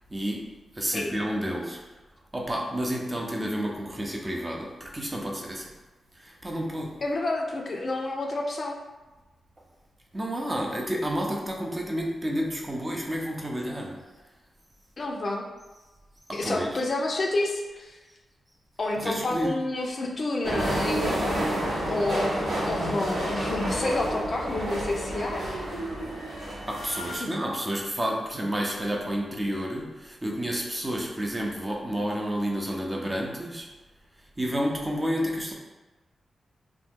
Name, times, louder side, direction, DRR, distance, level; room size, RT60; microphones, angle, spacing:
voice 1, 0.1-0.5 0.7-1.8 2.3-5.7 6.2-7.0 10.1-14.0 16.3-16.8 19.0-19.6 26.1-26.2 26.7-33.7 34.4-35.5, equal, 25° right, -1 dB, 0.6 m, -30 dB
voice 2, 7.0-8.8 15.0-15.5 16.3-18.0 18.8-21.4 21.9-25.4 27.2-27.3, left 2 dB, 50° left, 1 dB, 0.5 m, -29 dB
sound 1, 20.4-27.2, right 1 dB, 85° right, 0.9 m, -29 dB
2.9 x 2.2 x 3.5 m, 1.2 s
cardioid pair, 65°, 0 cm